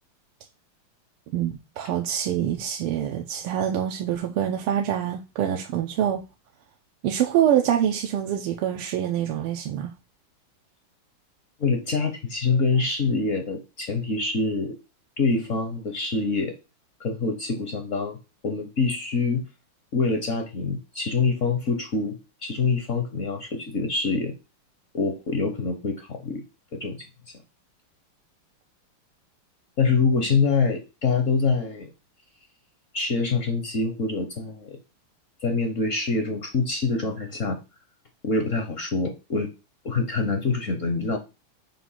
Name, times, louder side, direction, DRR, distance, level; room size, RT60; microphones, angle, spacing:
voice 1, 1.3-6.2 7.0-9.9, right 10 dB, 90° right, 1.6 m, -25 dB
voice 2, 11.6-14.7 15.2-16.5 17.0-18.2 18.4-19.4 19.9-24.3 24.9-26.4 26.7-27.0 29.8-31.9 32.9-34.8 35.4-37.6 38.2-39.5 39.8-41.2, left 4 dB, 55° left, 0.9 m, -25 dB
7.4 x 2.6 x 5.6 m
omnidirectional pair, 2.4 m